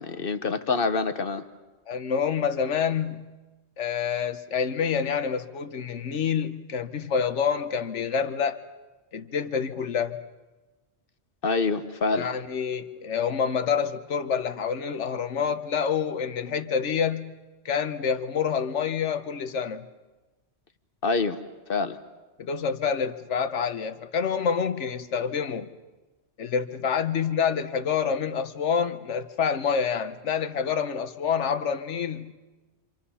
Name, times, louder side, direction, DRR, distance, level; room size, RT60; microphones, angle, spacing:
voice 1, 0.0-1.4 11.4-12.3 21.0-21.4 21.7-22.0, left 4 dB, 55° left, 9 dB, 1.3 m, -26 dB
voice 2, 1.9-3.4 3.8-8.6 9.1-10.2 12.1-17.4 17.6-19.8 22.4-25.7 26.4-32.3, left 7 dB, 85° left, 10 dB, 1.3 m, -27 dB
28.0 x 26.5 x 5.6 m, 1.2 s
omnidirectional pair, 1.2 m